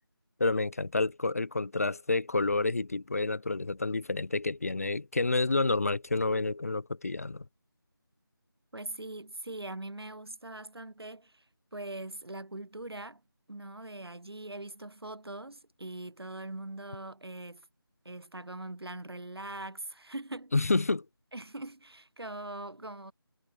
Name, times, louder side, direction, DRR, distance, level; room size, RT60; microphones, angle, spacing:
voice 1, 0.4-7.4 20.5-21.1, left 3 dB, 40° left, 0.6 m, -29 dB
voice 2, 8.7-11.4 11.7-13.2 13.5-17.7 18.1-20.7 21.3-23.1, right 2 dB, 85° right, 1.8 m, -42 dB
figure-of-eight pair, 170°, 13 cm